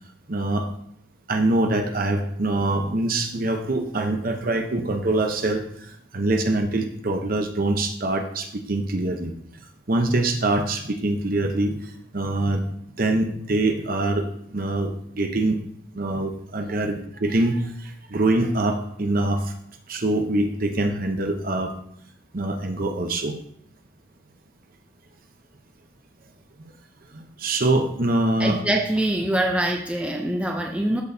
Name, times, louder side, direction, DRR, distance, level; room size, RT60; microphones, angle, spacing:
voice 1, 0.3-0.7 1.3-9.3 9.9-11.8 12.1-12.6 13.0-15.6 15.9-19.5 19.9-21.7 22.3-23.4 27.1-28.6, right 2 dB, 45° right, 5 dB, 0.8 m, -24 dB
voice 2, 28.4-31.0, right 1 dB, 5° right, 1 dB, 0.5 m, -24 dB
13.0 x 4.5 x 2.7 m, 0.69 s
head